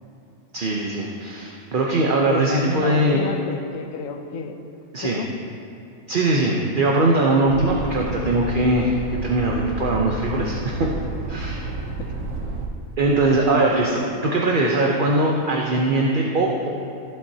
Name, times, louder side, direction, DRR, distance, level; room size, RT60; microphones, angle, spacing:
voice 1, 0.5-3.3 4.9-5.2 6.1-8.9 9.2-10.9 11.3-11.7 13.0-16.7, right 2 dB, 45° right, -1 dB, 0.8 m, -21 dB
voice 2, 2.3-4.6 5.0-5.3 12.0-12.1 13.0-13.4, left 5 dB, 70° left, 5 dB, 1.0 m, -31 dB
sound 1, 7.5-12.7, right 3 dB, 65° right, 1.2 m, -31 dB
15.0 x 8.0 x 2.8 m, 2.9 s
omnidirectional pair, 1.5 m